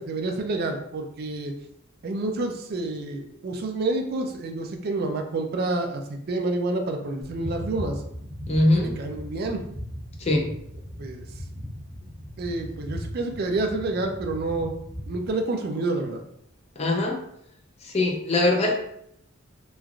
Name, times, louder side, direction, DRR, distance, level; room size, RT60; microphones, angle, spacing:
voice 1, 0.0-1.5 2.0-8.0 8.7-9.6 11.0-11.3 12.4-14.7 15.1-16.2, right 2 dB, 50° right, 4 dB, 0.3 m, -28 dB
sound 1, 7.2-15.3, equal, 25° right, 0.7 m, -37 dB
voice 2, 8.5-8.9 10.2-10.4 16.8-17.2 17.9-18.8, left 2 dB, 30° left, 1 dB, 0.4 m, -21 dB
3.1 x 2.4 x 2.3 m, 0.73 s
head